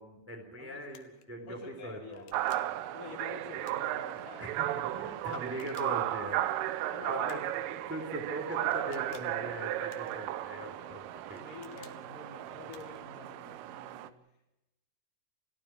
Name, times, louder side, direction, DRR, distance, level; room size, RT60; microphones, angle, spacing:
voice 1, 0.0-2.4 4.4-6.5 7.1-11.5, equal, 5° right, 2 dB, 2.9 m, -41 dB
sound 1, 0.9-1.3 2.1-2.8 3.6-4.3 5.4-6.2 7.3-7.6 8.7-9.4 9.9-10.5 11.3-12.0 12.7-13.1, left 11 dB, 85° left, 4.0 m, -58 dB
voice 2, 1.4-2.3 2.9-4.8 5.8-6.0 6.9-7.5 11.4-14.2, left 5 dB, 50° left, 3 dB, 3.8 m, -48 dB
sound 2, 2.3-14.1, right 13 dB, 90° right, 3.6 m, -35 dB
28.5 x 17.5 x 6.3 m, 0.93 s
omnidirectional pair, 5.5 m